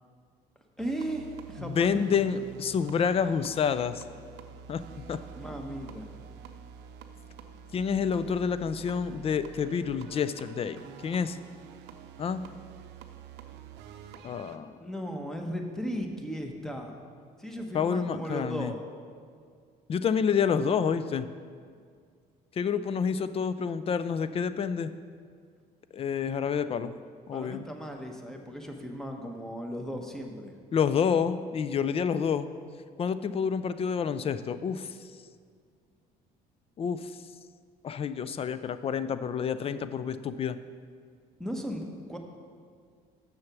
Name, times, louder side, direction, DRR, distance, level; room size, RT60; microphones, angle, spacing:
voice 1, 0.8-2.0 5.4-6.1 14.8-16.9 17.4-18.8 27.3-30.5 41.4-42.2, equal, 5° left, 3 dB, 1.0 m, -36 dB
sound 1, 0.8-14.6, right 7 dB, 90° right, 0.6 m, -47 dB
voice 2, 1.6-4.0 4.7-5.2 7.7-11.4 12.2-12.4 14.2-14.7 17.7-18.8 19.9-21.3 22.5-24.9 25.9-26.9 27.3-27.7 30.7-32.5 33.0-35.1 36.8-37.2 37.8-40.6, left 6 dB, 35° left, 13 dB, 0.4 m, -28 dB
7.0 x 6.4 x 6.0 m, 2.1 s
cardioid pair, 110°, 17 cm